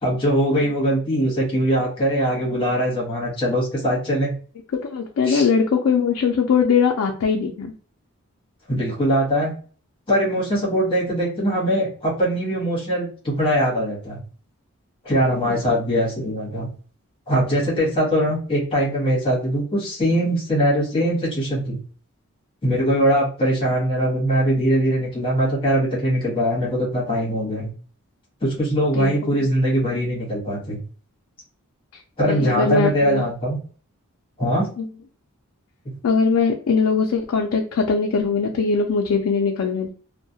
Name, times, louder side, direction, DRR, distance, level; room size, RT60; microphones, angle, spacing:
voice 1, 0.0-4.3 5.3-5.5 8.7-9.5 10.1-14.2 15.0-16.7 17.3-21.8 22.6-27.7 28.4-30.8 32.2-33.6 34.4-34.7, equal, 25° left, -4 dB, 1.0 m, -21 dB
voice 2, 4.8-7.7 15.5-15.6 29.0-29.5 31.9-33.2 34.8-34.9 36.0-39.9, left 5 dB, 75° left, 1 dB, 0.4 m, -21 dB
2.3 x 2.1 x 2.6 m, 0.41 s
head